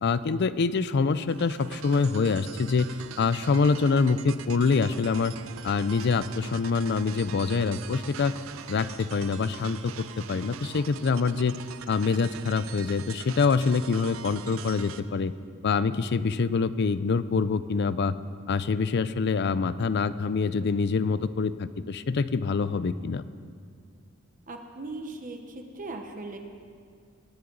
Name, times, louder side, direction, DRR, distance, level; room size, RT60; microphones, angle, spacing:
voice 1, 0.0-2.9 3.2-5.3 5.6-8.3 8.7-11.5 11.9-15.3 15.6-18.1 18.5-23.2, left 4 dB, 55° left, 15 dB, 0.4 m, -25 dB
sound 1, 1.3-15.0, right 7 dB, 80° right, 0.6 m, -43 dB
voice 2, 24.5-26.4, right 2 dB, 40° right, 4 dB, 1.0 m, -38 dB
22.0 x 9.7 x 4.0 m, 2.2 s
head